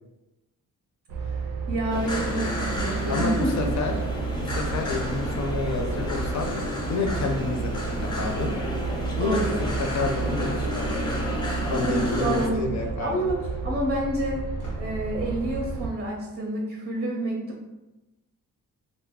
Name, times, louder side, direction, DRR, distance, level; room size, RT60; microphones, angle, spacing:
sound 1, 1.1-15.9, right 4 dB, 75° right, 0.5 m, -31 dB
voice 1, 1.7-3.5 9.2-9.7 11.7-12.7 13.0-14.4 14.8-17.7, right 1 dB, 30° right, 0 dB, 0.6 m, -28 dB
sound 2, 1.9-12.5, left 1 dB, 15° left, 0.7 m, -32 dB
sound 3, 2.7-3.3 7.0-7.6 9.6-10.0 11.3-11.5 11.9-12.0 12.2-12.3 14.6-15.2, left 1 dB, 90° left, 0.9 m, -41 dB
voice 2, 3.1-3.9 4.4-6.5 6.9-8.5 9.2-11.3 11.5-13.2, left 3 dB, 55° left, 3 dB, 0.6 m, -29 dB
2.4 x 2.1 x 3.6 m, 1.0 s
cardioid pair, 70°, 35 cm